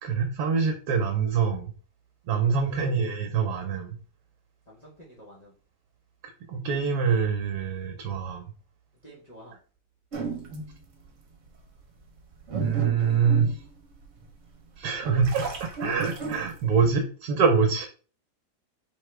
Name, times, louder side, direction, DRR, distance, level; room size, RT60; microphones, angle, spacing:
voice 1, 0.0-1.7 2.3-4.0 6.5-8.5 12.6-13.5 14.8-17.9, right 6 dB, 75° right, 4 dB, 1.2 m, -25 dB
voice 2, 2.4-2.8 4.7-5.5 9.0-9.6, equal, 30° left, -4 dB, 1.0 m, -49 dB
sound 1, 10.1-10.8 11.5-11.6 12.2-14.3 14.8-16.9, right 3 dB, 50° right, 1.3 m, -34 dB
4.4 x 3.6 x 3.2 m, 0.38 s
omnidirectional pair, 1.8 m